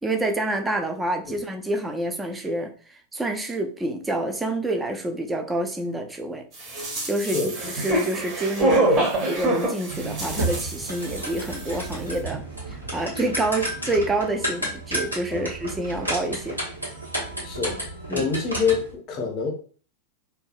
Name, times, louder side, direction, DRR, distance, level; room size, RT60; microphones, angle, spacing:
voice 1, 0.0-6.4 7.0-16.6 18.1-18.3, right 1 dB, 10° right, 0.4 m, -28 dB
sound 1, 6.6-11.4 11.7-11.8, right 2 dB, 35° right, 0.8 m, -25 dB
sound 2, 9.9-18.9, right 1 dB, 90° right, 0.9 m, -32 dB
voice 2, 17.4-17.8 18.1-19.5, left 5 dB, 35° left, 0.7 m, -26 dB
2.6 x 2.2 x 2.4 m
figure-of-eight pair, 90°, 0 cm